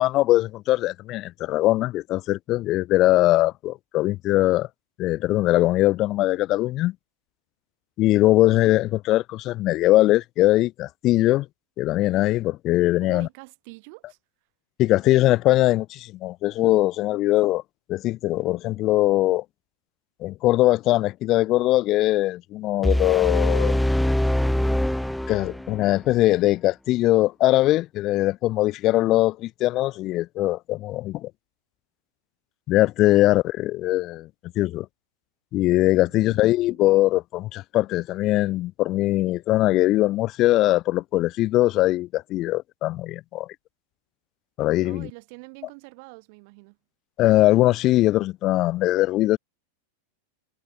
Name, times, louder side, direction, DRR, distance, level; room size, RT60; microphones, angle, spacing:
voice 1, 0.0-4.7 5.0-6.9 8.0-11.5 11.8-13.3 14.8-17.6 17.9-19.4 20.2-23.9 25.3-31.3 32.7-34.3 34.6-34.9 35.5-43.5 44.6-45.1 47.2-49.4, left 16 dB, 35° left, 0.9 m, -21 dB
voice 2, 13.0-14.2 33.1-33.2 36.2-36.8 44.8-46.8, right 32 dB, 45° right, 6.6 m, -45 dB
sound 1, 22.8-25.9, left 1 dB, ahead, 0.4 m, -23 dB
figure-of-eight pair, 90°, 0 cm